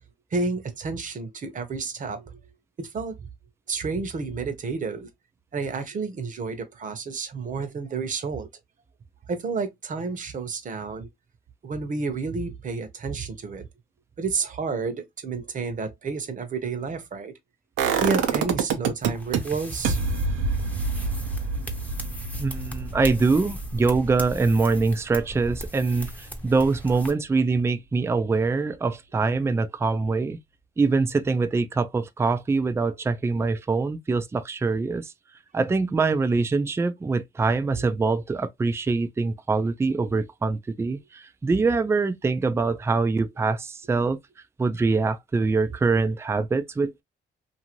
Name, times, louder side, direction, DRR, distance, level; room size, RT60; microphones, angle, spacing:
voice 1, 0.3-2.3 2.8-3.2 3.7-5.1 5.5-8.5 9.3-11.1 11.6-13.7 14.2-17.3 18.0-20.0 37.8-37.9, right 4 dB, 40° right, 0.8 m, -30 dB
sound 1, 17.8-19.4 19.8-25.7 26.0-26.1, right 5 dB, 90° right, 0.7 m, -27 dB
sound 2, 19.0-27.1, equal, 5° left, 0.7 m, -38 dB
voice 2, 22.4-30.4 30.8-35.1 35.5-44.2 44.6-47.0, right 4 dB, 15° right, 0.3 m, -24 dB
2.6 x 2.6 x 2.9 m
cardioid pair, 90°, 20 cm